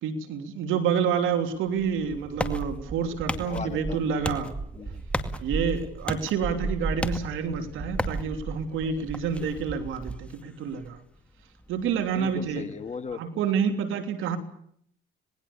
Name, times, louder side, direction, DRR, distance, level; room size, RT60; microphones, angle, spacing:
voice 1, 0.0-4.5 5.4-11.0 11.7-12.7 13.1-14.4, right 7 dB, 90° right, 7 dB, 3.2 m, -28 dB
sound 1, 1.3-1.4 1.7-10.2, right 3 dB, 25° right, 2.7 m, -36 dB
sound 2, 1.7-13.1, left 1 dB, 5° left, 2.2 m, -38 dB
voice 2, 3.4-4.2 4.8-5.0 12.1-13.2, left 5 dB, 35° left, 8 dB, 2.0 m, -37 dB
27.0 x 20.0 x 7.0 m, 0.65 s
cardioid pair, 90°, 20 cm